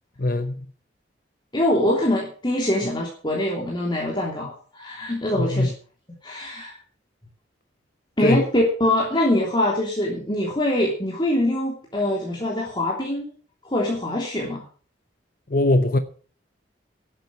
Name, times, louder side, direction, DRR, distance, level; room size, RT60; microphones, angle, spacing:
voice 1, 0.2-0.7 5.3-5.7 8.2-8.4 15.5-16.0, left 1 dB, 50° left, 0.9 m, -21 dB
voice 2, 1.5-5.7 6.2-6.8 8.2-13.3 13.6-14.6, left 1 dB, 25° left, 3.1 m, -23 dB
12.0 x 8.8 x 7.6 m
head